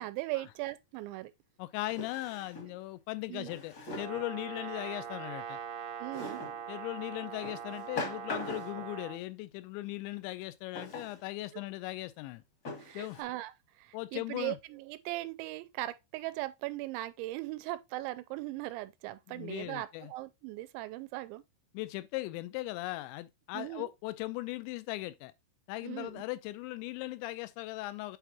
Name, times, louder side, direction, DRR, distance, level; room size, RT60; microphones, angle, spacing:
voice 1, 0.0-1.3 3.3-3.5 6.0-6.4 12.8-13.5 13.8-21.4 23.5-23.9 25.8-26.2, right 18 dB, 85° right, 2.9 m, -39 dB
Drawer open or close, 0.6-0.7 1.9-2.8 3.5-4.2 6.1-6.6 7.4-8.9 10.7-11.2 11.9-12.0 12.6-13.2, left 2 dB, 55° left, 1.1 m, -41 dB
voice 2, 1.6-5.6 6.7-12.4 12.9-13.2 13.9-14.6 19.3-20.1 21.7-25.3 25.7-28.2, left 19 dB, 85° left, 2.8 m, -38 dB
Brass instrument, 4.0-9.2, right 7 dB, 70° right, 2.2 m, -42 dB
8.0 x 4.5 x 2.8 m
omnidirectional pair, 5.3 m